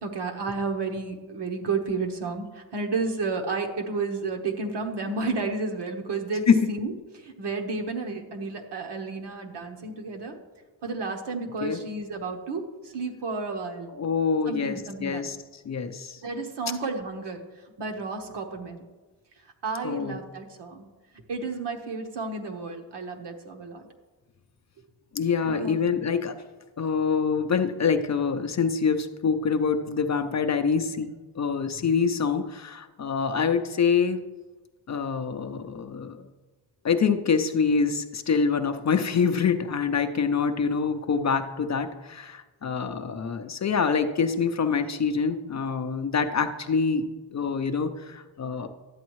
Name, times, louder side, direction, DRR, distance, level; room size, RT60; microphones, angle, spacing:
voice 1, 0.0-10.4 10.8-13.9 14.5-15.3 16.2-17.4 17.8-18.9 19.6-20.9 21.3-23.8 25.4-26.0, right 3 dB, 60° right, 3 dB, 1.2 m, -32 dB
voice 2, 13.9-15.4 15.6-16.2 19.8-20.2 25.1-26.4 26.8-34.2 34.9-36.3 36.8-47.1 47.3-48.7, left 5 dB, 35° left, 7 dB, 0.5 m, -25 dB
12.0 x 8.2 x 3.1 m, 1.2 s
cardioid pair, 95°, 47 cm